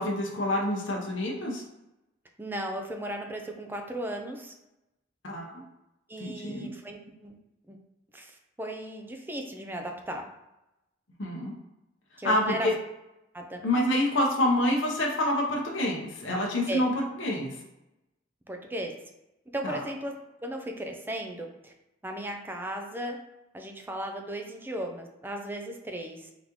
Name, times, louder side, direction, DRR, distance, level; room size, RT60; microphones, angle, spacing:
voice 1, 0.0-1.6 5.2-5.6 6.2-6.7 11.2-11.5 12.2-12.7 13.6-17.5 19.6-19.8, left 1 dB, 70° left, -1 dB, 0.8 m, -27 dB
voice 2, 2.4-4.5 6.1-7.4 7.7-7.8 8.1-10.2 12.2-12.7 13.3-13.6 16.7-16.8 18.5-18.9 19.5-20.2 20.4-21.7 22.0-23.2 23.5-26.3, right 1 dB, 10° right, 3 dB, 0.5 m, -36 dB
4.0 x 3.5 x 3.0 m, 0.93 s
head